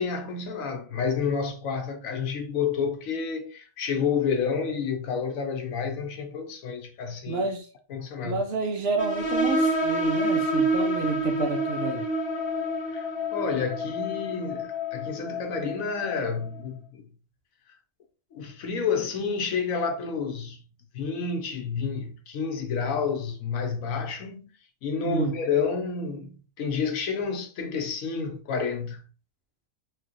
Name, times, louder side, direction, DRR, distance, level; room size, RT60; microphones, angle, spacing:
voice 1, 0.0-7.5 7.9-8.4 12.9-17.1 18.3-20.6 20.9-24.5 24.8-29.0, left 5 dB, 85° left, 1.2 m, -29 dB
voice 2, 7.3-7.7 8.2-12.1 25.0-25.4, right 4 dB, 60° right, 0.8 m, -29 dB
sound 1, 9.0-16.3, equal, 50° left, 1.0 m, -28 dB
4.6 x 2.4 x 2.9 m
omnidirectional pair, 1.4 m